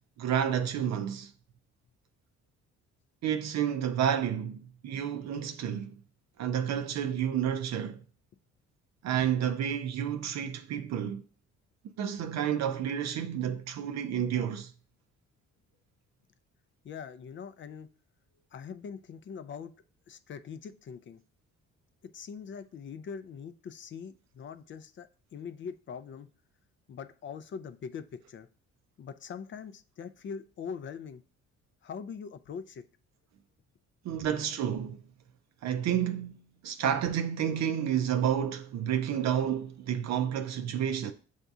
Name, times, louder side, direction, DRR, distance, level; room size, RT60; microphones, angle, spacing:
voice 1, 0.2-1.3 3.2-6.0 6.4-8.0 9.0-11.2 12.0-14.7 34.0-35.0 35.6-41.1, right 9 dB, 65° right, 0.5 m, -30 dB
voice 2, 16.8-17.9 18.5-19.7 20.1-21.2 22.0-26.3 26.9-28.5 29.0-31.2 31.8-32.8 34.1-34.2, left 6 dB, 40° left, 0.4 m, -42 dB
7.8 x 2.7 x 2.3 m
cardioid pair, 90°, 30 cm